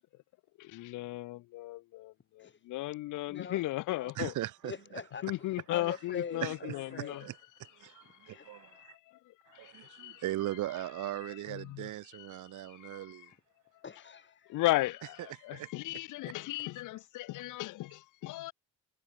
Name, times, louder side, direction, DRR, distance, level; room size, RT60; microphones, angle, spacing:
voice 1, 0.6-4.3 5.2-7.3 8.1-10.2 11.2-12.3 12.5-13.3 14.5-18.5, left 17 dB, 85° left, 0.9 m, -36 dB
voice 2, 3.3-3.6 3.9-4.1 4.6-7.3 8.3-8.5 13.8-14.5, left 6 dB, 40° left, 3.6 m, -43 dB
voice 3, 4.2-4.7 6.4-7.3 7.8-8.9 9.5-13.3 15.5-15.7, right 14 dB, 85° right, 2.4 m, -39 dB
cardioid pair, 90°, 30 cm